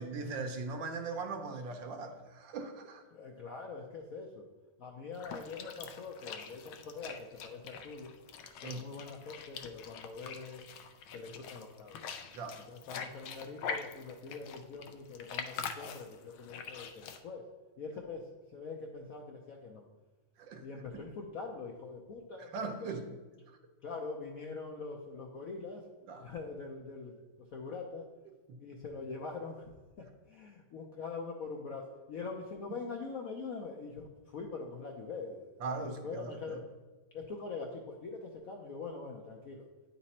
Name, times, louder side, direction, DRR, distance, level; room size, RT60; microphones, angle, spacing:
voice 1, 0.0-3.0 8.6-8.8 12.3-12.6 20.4-20.6 20.9-21.0 22.4-23.0 23.5-23.6 26.1-26.3 28.5-28.6 35.6-36.6, right 4 dB, 70° right, 5 dB, 1.5 m, -40 dB
voice 2, 3.1-4.5 4.8-8.1 8.6-10.6 11.1-12.1 12.7-17.4 17.8-19.8 20.6-22.6 22.8-22.9 23.8-25.8 26.2-27.2 27.5-28.1 28.6-29.7 30.0-36.6 37.1-39.7, left 4 dB, 65° left, 1 dB, 0.8 m, -43 dB
sound 1, 5.1-17.2, left 6 dB, 85° left, 1.4 m, -44 dB
9.6 x 4.1 x 4.2 m, 1.2 s
omnidirectional pair, 2.1 m